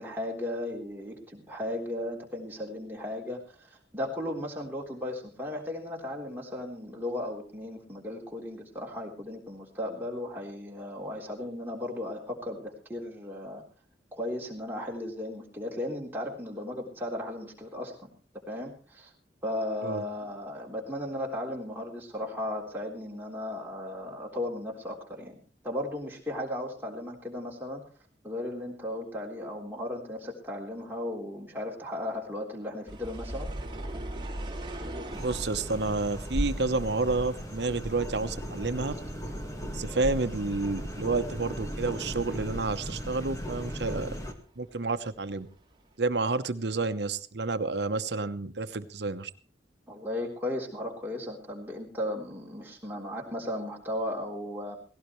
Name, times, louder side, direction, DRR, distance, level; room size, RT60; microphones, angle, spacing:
voice 1, 0.0-3.6 3.9-13.6 14.1-18.1 18.5-19.1 19.4-25.4 25.6-27.8 28.2-33.5 49.9-54.8, left 1 dB, 10° right, -2 dB, 3.6 m, -36 dB
sound 1, 32.9-44.1 44.3-45.4 45.9-46.0, right 1 dB, 25° right, 2.4 m, -43 dB
sound 2, 35.1-44.3, equal, 20° left, 1.7 m, -36 dB
voice 2, 35.2-38.9 39.7-44.1 44.6-45.5 46.0-49.3, right 3 dB, 80° right, 11 dB, 1.0 m, -30 dB
17.5 x 17.5 x 3.2 m, 0.35 s
head